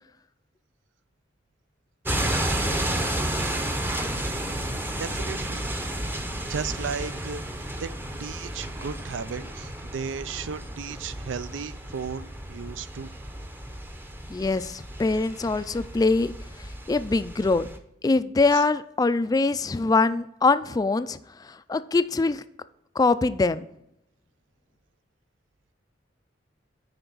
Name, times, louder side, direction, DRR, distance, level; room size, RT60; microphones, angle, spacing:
sound 1, 2.0-17.8, right 1 dB, 10° right, 0.7 m, -32 dB
voice 1, 4.9-5.6 6.5-7.9 8.2-13.1 18.5-18.6, right 6 dB, 90° right, 0.4 m, -35 dB
voice 2, 14.3-17.7 18.0-22.4 23.0-23.7, left 3 dB, 20° left, 0.3 m, -23 dB
10.0 x 4.4 x 4.0 m
head